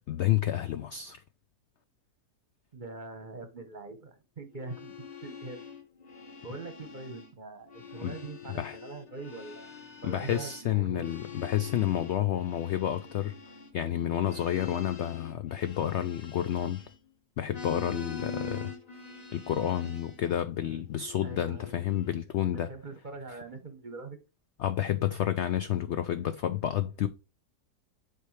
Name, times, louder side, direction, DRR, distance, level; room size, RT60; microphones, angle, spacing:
voice 1, 0.1-1.2 8.0-8.1 8.6-8.8 10.0-13.3 13.7-16.8 17.4-18.7 19.3-22.7 23.3-23.4 24.6-27.1, left 11 dB, 80° left, 0.6 m, -30 dB
voice 2, 2.7-4.9 5.2-5.6 6.4-9.7 10.0-11.0 21.2-21.8 22.7-24.2, right 3 dB, 35° right, 0.9 m, -43 dB
sound 1, 4.5-7.3 7.6-17.1 17.4-20.2 20.9-22.1, left 5 dB, 30° left, 0.9 m, -44 dB
8.1 x 4.6 x 3.2 m
omnidirectional pair, 1.7 m